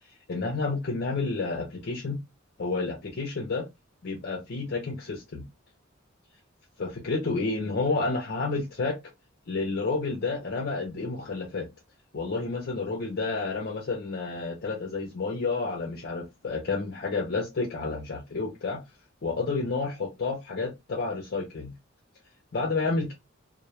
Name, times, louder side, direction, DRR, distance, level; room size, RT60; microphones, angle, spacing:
voice 1, 0.3-2.2 2.6-3.7 4.0-5.5 6.8-9.0 9.5-11.7 12.1-18.8 19.2-21.7 22.5-23.1, left 3 dB, 50° left, -1 dB, 0.5 m, -30 dB
2.1 x 2.1 x 2.9 m, 0.21 s
head